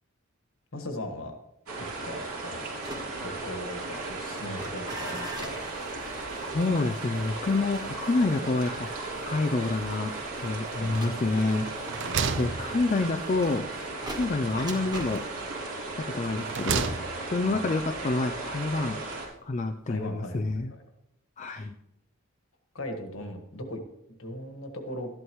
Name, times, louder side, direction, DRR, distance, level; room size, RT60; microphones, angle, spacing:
voice 1, 0.7-1.4 1.8-2.7 3.2-5.6 10.8-11.4 11.9-12.2 17.4-17.6 19.9-20.8 22.7-23.8 24.1-25.1, left 1 dB, 65° left, 5 dB, 1.5 m, -38 dB
sound 1, 1.7-19.3, right 2 dB, 90° right, 3.0 m, -36 dB
sound 2, 2.7-19.7 20.0-20.4, right 1 dB, 20° right, 1.4 m, -45 dB
voice 2, 6.5-8.9 9.3-10.1 10.4-11.7 12.4-13.7 14.0-15.2 16.0-16.9 17.3-19.0 19.4-20.7 21.4-21.8, left 3 dB, 35° left, 6 dB, 0.4 m, -28 dB
sound 3, 10.9-11.4 11.7-13.3 14.6-15.4 16.1-17.4, right 5 dB, 55° right, 0.6 m, -33 dB
13.0 x 11.0 x 3.1 m, 0.84 s
head